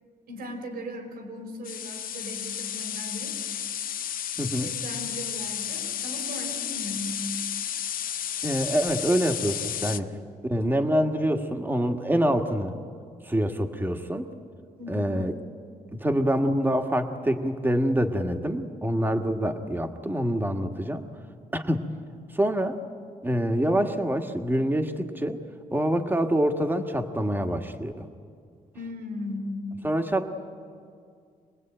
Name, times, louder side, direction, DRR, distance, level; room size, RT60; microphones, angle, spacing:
voice 1, 0.3-3.4 4.5-7.3 14.8-15.1 28.7-29.8, left 1 dB, 90° right, 4 dB, 3.9 m, -37 dB
sound 1, 1.6-10.0, left 9 dB, 70° left, 0.7 m, -32 dB
voice 2, 4.4-4.7 8.4-10.1 10.4-12.7 13.2-14.3 14.9-15.3 15.9-21.1 21.5-21.8 22.3-22.8 23.2-25.4 25.7-28.1 29.8-30.3, equal, 15° right, 6 dB, 1.6 m, -26 dB
25.5 x 19.5 x 9.0 m, 2.2 s
cardioid pair, 115°, 15 cm